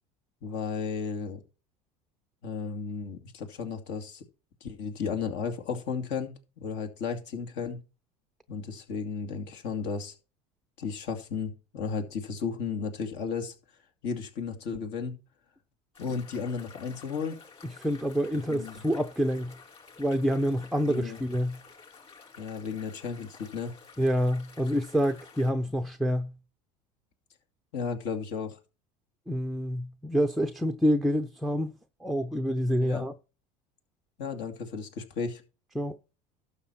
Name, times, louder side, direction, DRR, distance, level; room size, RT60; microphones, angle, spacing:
voice 1, 0.4-1.4 2.4-4.2 4.6-7.8 8.5-10.1 10.8-13.5 14.0-15.2 16.0-17.4 18.4-18.8 20.8-21.2 22.4-23.7 27.7-28.6 32.8-33.0 34.2-35.4, left 5 dB, 60° left, 2.5 m, -34 dB
sound 1, 15.9-25.5, left 5 dB, 30° left, 5.3 m, -52 dB
voice 2, 17.8-19.6 20.0-21.6 24.0-26.3 29.3-31.7 32.0-33.1 35.8-36.0, equal, ahead, 0.6 m, -27 dB
12.0 x 7.4 x 4.4 m
supercardioid pair, 110°, 20 cm